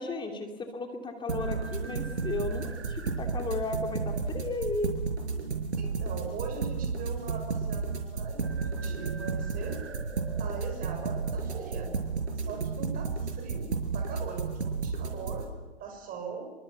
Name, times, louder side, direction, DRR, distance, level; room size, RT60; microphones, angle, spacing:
voice 1, 0.0-5.0, left 3 dB, 15° left, 4 dB, 2.8 m, -34 dB
sound 1, 1.3-15.4, right 4 dB, 85° right, 5.5 m, -32 dB
voice 2, 5.8-9.8 10.4-11.9 12.4-15.5 15.8-16.5, right 5 dB, 25° right, 4 dB, 6.2 m, -41 dB
27.0 x 24.5 x 7.1 m, 1.3 s
hypercardioid pair, 125°, 33 cm